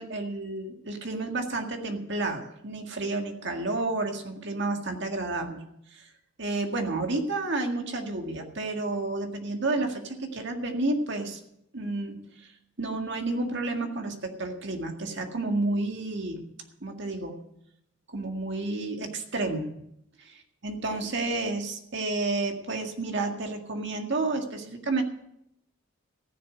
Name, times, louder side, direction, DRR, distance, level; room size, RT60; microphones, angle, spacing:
voice 1, 0.0-5.6 5.9-6.1 6.4-11.4 11.7-12.5 12.8-16.4 16.8-17.4 18.1-19.7 20.6-25.0, right 2 dB, 55° right, 4 dB, 1.9 m, -30 dB
15.0 x 6.8 x 9.1 m, 0.78 s
head